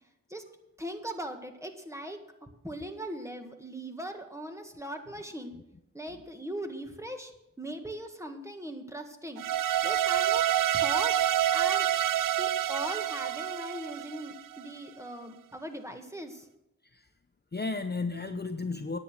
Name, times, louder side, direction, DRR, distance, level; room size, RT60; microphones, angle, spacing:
voice 1, 0.8-2.2 2.6-5.5 5.9-7.3 7.6-9.4 9.8-10.5 10.7-11.9 12.4-16.4, right 1 dB, 10° right, 5 dB, 1.7 m, -39 dB
sound 1, 9.4-14.6, right 11 dB, 75° right, 0.5 m, -27 dB
voice 2, 17.5-19.0, left 3 dB, 30° left, 7 dB, 0.7 m, -34 dB
10.0 x 8.3 x 6.3 m, 0.86 s
cardioid pair, 45°, 32 cm